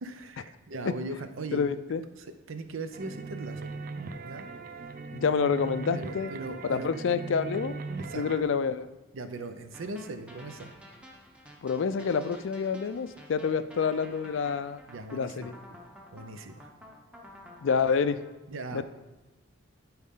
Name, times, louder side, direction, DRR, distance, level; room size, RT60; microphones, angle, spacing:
voice 1, 0.0-1.6 2.2-3.7 4.2-4.5 5.9-7.0 7.9-8.2 9.1-10.7 14.9-15.6 16.1-16.7 18.5-18.8, right 2 dB, 75° right, 8 dB, 0.7 m, -39 dB
voice 2, 1.5-2.0 5.1-6.3 6.6-7.8 8.1-8.9 11.6-14.8 15.1-15.5 17.6-18.2 18.7-18.8, left 5 dB, 65° left, 13 dB, 0.4 m, -28 dB
sound 1, 2.9-8.4, right 4 dB, 45° right, 0.5 m, -39 dB
sound 2, 9.7-18.3, equal, 5° right, 0.8 m, -51 dB
12.0 x 4.3 x 3.7 m, 1.1 s
head